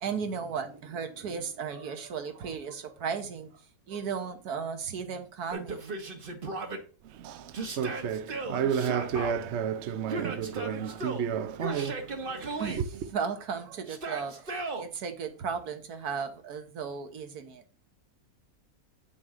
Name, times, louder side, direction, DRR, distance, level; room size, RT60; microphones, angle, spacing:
voice 1, 0.0-6.0 12.6-12.9 13.1-17.6, right 6 dB, 75° right, 1.6 m, -35 dB
Yell, 5.5-6.8 7.5-9.3 10.1-11.3 11.6-12.8 13.9-14.9, right 2 dB, 40° right, 1.2 m, -36 dB
voice 2, 7.0-12.9, right 8 dB, 60° right, 0.8 m, -32 dB
9.2 x 6.3 x 3.7 m
omnidirectional pair, 1.6 m